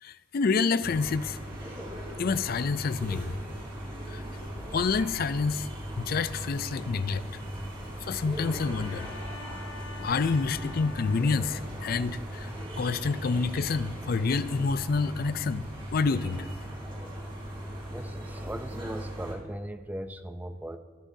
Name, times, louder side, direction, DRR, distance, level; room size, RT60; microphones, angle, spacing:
voice 1, 0.0-1.4 2.2-3.4 4.1-4.2 4.7-5.7 6.0-7.2 8.0-9.1 10.0-12.5 12.8-16.5, left 4 dB, 45° left, 14 dB, 0.4 m, -28 dB
sound 1, 0.8-19.3, equal, 25° right, 3.3 m, -39 dB
sound 2, 6.5-9.7 10.0-13.7 14.0-15.0, equal, 10° left, 1.8 m, -56 dB
Bowed string instrument, 8.4-12.1, left 5 dB, 90° left, 1.0 m, -47 dB
voice 2, 17.9-20.8, right 1 dB, 10° right, 9 dB, 0.5 m, -38 dB
18.5 x 10.0 x 2.7 m, 1.5 s
head